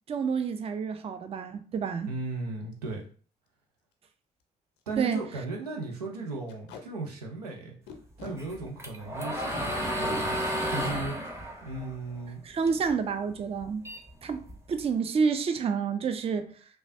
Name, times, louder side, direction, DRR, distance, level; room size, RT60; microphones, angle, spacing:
voice 1, 0.1-2.1 5.0-5.2 12.4-13.9 14.2-16.6, right 6 dB, 30° right, 0.4 m, -29 dB
voice 2, 2.1-3.1 4.9-7.8 8.2-10.4 10.7-12.5, right 3 dB, 90° right, 0.5 m, -36 dB
Packing tape duct tape, 2.8-3.0 3.5-3.6 3.8-3.9 4.4-4.5 4.8-4.9 5.3-5.5 6.5-6.8 7.9-8.4 9.3-9.6 11.2-11.4 11.7-11.9 12.2-12.6, left 3 dB, 70° left, 0.5 m, -45 dB
sound 1, 8.4-12.9 13.3-14.8, equal, 15° right, 0.8 m, -32 dB
3.1 x 2.2 x 2.6 m
hypercardioid pair, 45°, 19 cm